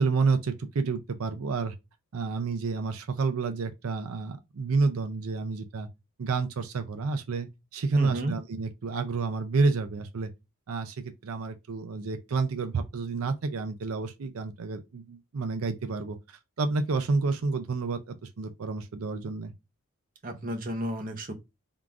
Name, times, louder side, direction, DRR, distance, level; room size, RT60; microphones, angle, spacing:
voice 1, 0.0-1.7 2.1-5.9 6.2-10.3 10.7-19.5, right 4 dB, 75° right, 0.5 m, -29 dB
voice 2, 7.9-8.3 20.2-21.3, right 1 dB, 40° right, 0.7 m, -31 dB
3.7 x 2.4 x 4.5 m
head